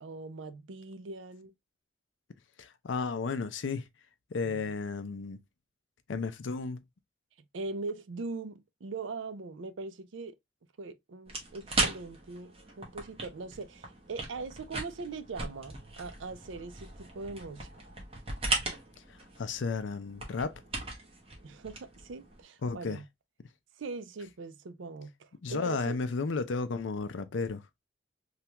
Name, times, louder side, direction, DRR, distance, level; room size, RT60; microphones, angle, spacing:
voice 1, 0.0-1.5 4.5-4.6 7.5-10.4 10.8-17.7 21.4-23.0 23.8-26.0, right 3 dB, 80° right, 0.5 m, -41 dB
voice 2, 2.6-3.9 4.3-5.4 6.1-6.8 19.1-20.6 22.6-23.0 25.4-27.6, left 4 dB, 75° left, 0.5 m, -33 dB
sound 1, 11.3-22.4, right 2 dB, 30° right, 0.9 m, -38 dB
3.3 x 2.3 x 2.8 m
head